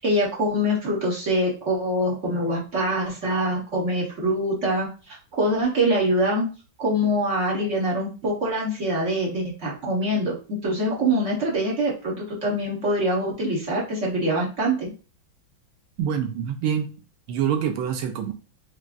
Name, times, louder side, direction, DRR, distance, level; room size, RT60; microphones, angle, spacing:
voice 1, 0.0-6.4 6.8-10.3 10.6-14.9, right 1 dB, 45° right, -4 dB, 1.2 m, -24 dB
voice 2, 16.0-16.9 17.3-18.3, right 8 dB, 85° right, 6 dB, 1.6 m, -25 dB
4.8 x 3.2 x 2.5 m, 0.35 s
omnidirectional pair, 2.2 m